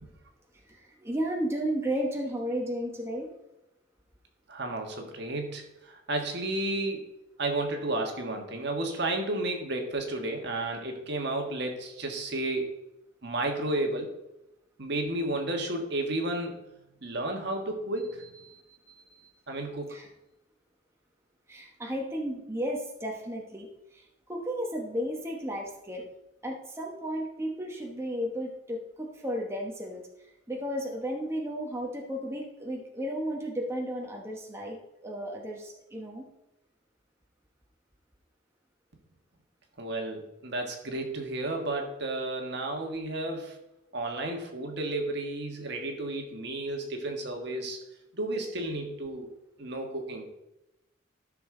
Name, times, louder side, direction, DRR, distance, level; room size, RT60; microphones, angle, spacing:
voice 1, 0.7-3.3 18.4-19.0 19.9-20.1 21.5-24.0 24.3-26.1 26.4-30.0 30.5-36.2, equal, 15° right, -1 dB, 1.1 m, -34 dB
voice 2, 4.5-7.1 7.4-12.7 13.2-14.1 14.8-16.6 17.0-18.2 19.5-20.0 39.8-43.5 43.9-47.8 48.1-49.3 49.6-50.3, right 2 dB, 55° right, 3 dB, 1.5 m, -32 dB
13.0 x 6.3 x 3.8 m, 0.91 s
head